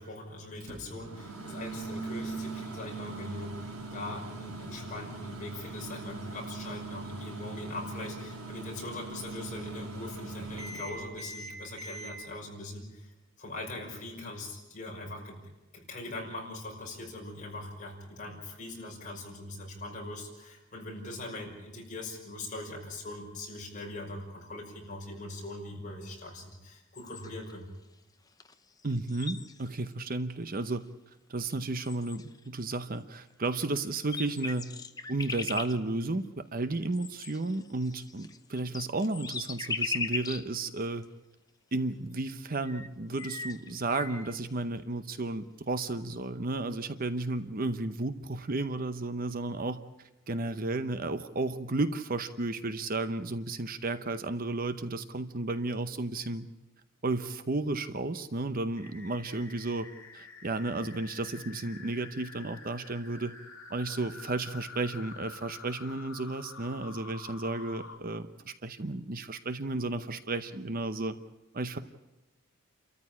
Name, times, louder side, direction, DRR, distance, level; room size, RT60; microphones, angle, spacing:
voice 1, 0.0-15.4 15.7-27.7, left 2 dB, 35° left, -1 dB, 5.7 m, -41 dB
Microwave oven, 0.6-12.1, right 3 dB, 75° right, 5.1 m, -41 dB
sound 1, 26.9-27.5 28.4-28.5 28.8-29.9 30.6-30.7 31.5-31.6 31.8-32.5 33.6-33.7 34.0-35.7 36.9-40.5 41.0-41.1 42.3-42.4 42.6-44.3, left 4 dB, 15° left, 0.8 m, -38 dB
voice 2, 28.8-30.8 31.3-34.7 35.1-41.0 41.7-49.8 50.3-56.5 57.0-59.9 60.1-63.3 63.7-71.2 71.5-71.8, right 2 dB, 40° right, 11 dB, 0.8 m, -33 dB
sound 2, 58.8-67.9, left 5 dB, 60° left, 3.6 m, -48 dB
29.0 x 14.0 x 8.7 m, 1.0 s
head